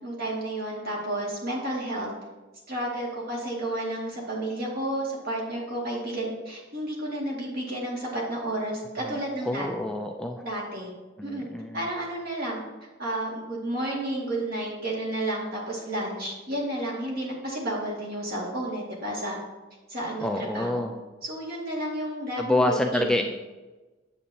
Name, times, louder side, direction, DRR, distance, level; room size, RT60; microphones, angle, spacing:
voice 1, 0.0-2.1 2.7-9.7 10.4-10.9 11.2-11.4 11.7-12.6 13.0-19.4 19.9-20.8 21.2-22.6 22.9-23.2, right 1 dB, 50° right, -3 dB, 2.0 m, -31 dB
voice 2, 9.5-10.4 11.2-11.9 20.2-20.9 22.4-23.2, left 1 dB, 5° left, 3 dB, 0.3 m, -27 dB
8.5 x 7.3 x 2.8 m, 1.2 s
head